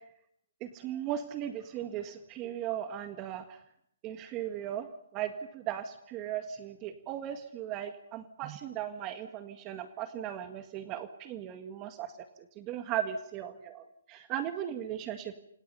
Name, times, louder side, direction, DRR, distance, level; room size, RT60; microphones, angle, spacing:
voice 1, 0.6-3.6 4.0-4.9 5.1-12.1 12.6-15.3, right 10 dB, 25° right, 8 dB, 1.8 m, -37 dB
29.0 x 26.0 x 5.7 m, 0.72 s
hypercardioid pair, 155°, 0 cm